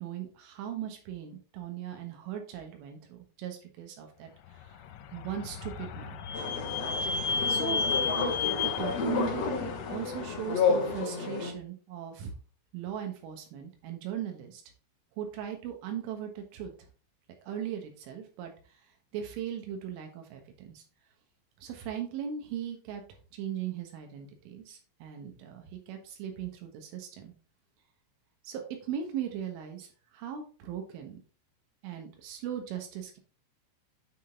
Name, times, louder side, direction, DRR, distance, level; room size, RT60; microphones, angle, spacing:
voice 1, 0.0-6.2 7.5-7.8 8.2-8.3 8.6-12.3 12.7-14.6 15.2-16.7 17.4-18.5 19.1-20.8 21.6-23.0 23.3-27.3 28.4-31.2 31.8-33.2, right 9 dB, 75° right, 4 dB, 3.8 m, -38 dB
Vehicle / Squeak, 4.9-10.5, left 5 dB, 90° left, 3.3 m, -33 dB
sound 1, 6.3-11.5, left 5 dB, 65° left, 1.6 m, -31 dB
9.2 x 4.0 x 3.8 m, 0.37 s
omnidirectional pair, 5.9 m